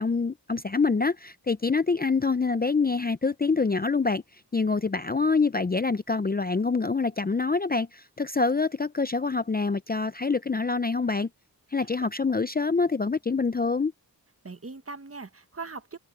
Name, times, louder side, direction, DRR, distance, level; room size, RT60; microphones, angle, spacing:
voice 1, 0.0-4.2 4.5-11.3 11.7-13.9, left 4 dB, 25° left, 0.5 m, -26 dB
voice 2, 11.8-12.1 14.4-16.0, right 4 dB, 35° right, 1.3 m, -40 dB
wide cardioid pair, 70°, 39 cm